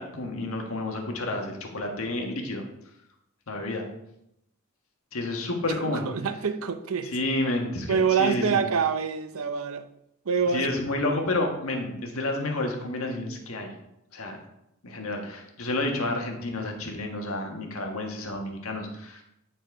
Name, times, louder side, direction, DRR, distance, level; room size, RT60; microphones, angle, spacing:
voice 1, 0.0-2.6 3.5-3.9 5.1-6.1 7.1-8.6 10.5-13.7 14.1-14.4 14.8-19.2, left 2 dB, 85° left, 1.4 m, -30 dB
voice 2, 5.9-7.1 7.9-9.9 10.3-10.7, right 6 dB, 80° right, 0.6 m, -25 dB
9.1 x 4.2 x 4.6 m
head